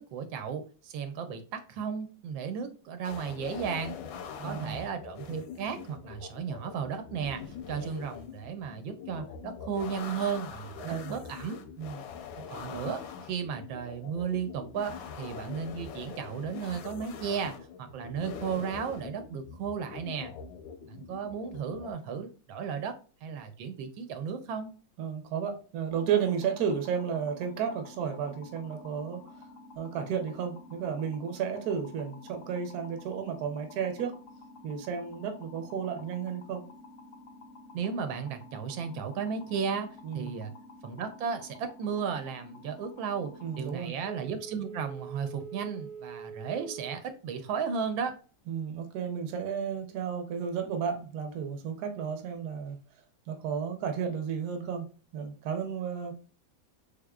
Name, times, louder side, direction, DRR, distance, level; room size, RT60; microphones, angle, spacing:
voice 1, 0.0-4.0 4.4-11.6 12.4-20.3 20.9-24.7 37.7-39.9 40.1-40.5 40.8-48.1, right 6 dB, 90° right, 1.4 m, -35 dB
sound 1, 3.0-21.9, left 7 dB, 90° left, 1.4 m, -43 dB
voice 2, 4.4-4.8 10.8-11.1 11.8-12.0 25.0-29.2 29.7-34.1 34.6-36.6 40.0-40.3 43.4-43.9 48.5-52.8 53.3-54.8 55.1-56.1, right 7 dB, 65° right, 1.1 m, -33 dB
sound 2, 25.9-43.7, left 2 dB, 60° left, 0.8 m, -51 dB
Telephone, 44.0-47.1 47.5-47.6, right 6 dB, 35° left, 0.5 m, -43 dB
3.5 x 3.5 x 2.3 m
omnidirectional pair, 2.1 m